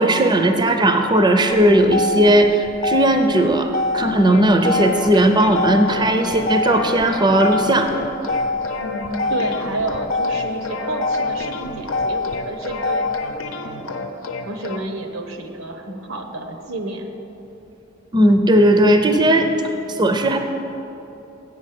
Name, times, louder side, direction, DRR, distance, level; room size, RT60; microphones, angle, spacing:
voice 1, 0.0-7.9 18.1-20.4, right 1 dB, 20° right, 6 dB, 0.5 m, -16 dB
Motor vehicle (road), 1.5-13.5, left 2 dB, 35° left, 0.4 m, -25 dB
sound 1, 4.3-14.8, left 3 dB, 85° left, 0.8 m, -31 dB
voice 2, 8.8-13.1 13.4-14.1 14.4-17.1, right 2 dB, 90° right, 4 dB, 1.0 m, -30 dB
8.2 x 7.3 x 7.6 m, 2.9 s
head